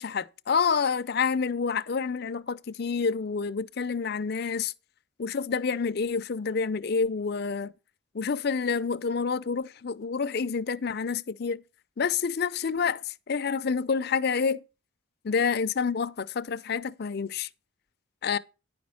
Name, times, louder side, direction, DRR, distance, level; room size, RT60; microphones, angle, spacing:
voice 1, 0.0-4.7 5.2-7.7 8.1-11.6 12.0-14.6 15.2-17.5 18.2-18.4, left 5 dB, 45° left, 0.5 m, -28 dB
10.0 x 5.1 x 6.2 m
head